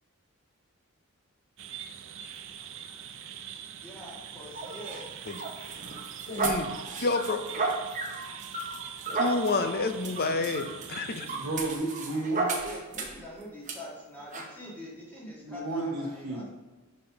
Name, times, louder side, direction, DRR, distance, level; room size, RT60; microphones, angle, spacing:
sound 1, 1.6-11.8, right 8 dB, 55° right, 0.4 m, -43 dB
voice 1, 3.8-5.1 11.3-11.4 12.4-16.5, left 1 dB, 10° left, -6 dB, 1.7 m, -44 dB
sound 2, 4.5-13.2 13.7-13.8 14.3-14.5, right 3 dB, 35° right, 0.8 m, -34 dB
voice 2, 6.3-6.7 7.0-7.4 9.1-11.3, left 3 dB, 45° left, 7 dB, 0.5 m, -29 dB
voice 3, 11.3-12.5 15.4-16.5, right 2 dB, 75° right, -3 dB, 1.0 m, -32 dB
5.2 x 4.2 x 5.7 m, 1.3 s
head